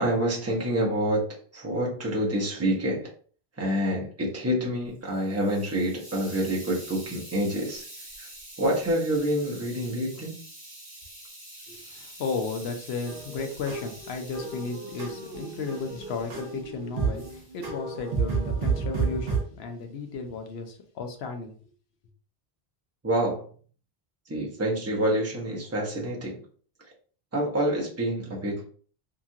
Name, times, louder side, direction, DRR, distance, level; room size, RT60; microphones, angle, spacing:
voice 1, 0.0-3.1 3.6-7.9 8.2-8.3 8.6-10.4 23.0-23.5 24.3-26.4 27.3-28.7, right 1 dB, 15° right, -3 dB, 0.7 m, -27 dB
Hiss, 4.9-16.6 17.2-17.5, right 1 dB, 35° right, 1.2 m, -46 dB
voice 2, 11.7-21.5, left 4 dB, 90° left, 5 dB, 0.9 m, -34 dB
sound 1, 13.1-19.4, right 5 dB, 60° right, 0.9 m, -31 dB
2.9 x 2.4 x 2.7 m, 0.43 s
omnidirectional pair, 1.0 m